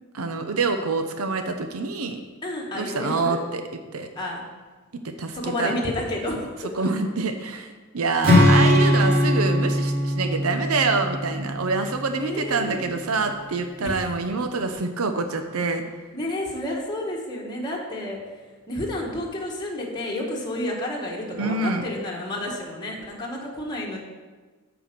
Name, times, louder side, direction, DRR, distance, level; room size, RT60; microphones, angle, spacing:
voice 1, 0.1-2.2 2.7-3.6 3.9-4.1 5.0-5.7 6.7-16.0 21.4-21.8, right 3 dB, 90° right, 7 dB, 0.7 m, -26 dB
voice 2, 2.4-3.4 4.1-4.4 5.3-6.5 6.8-6.9 12.1-12.9 13.3-13.4 13.8-14.0 16.1-18.4 18.7-24.0, left 1 dB, 20° left, -3 dB, 1.6 m, -30 dB
Strum, 8.2-12.3, left 1 dB, 45° right, 2.2 m, -21 dB
8.8 x 4.9 x 6.8 m, 1.3 s
head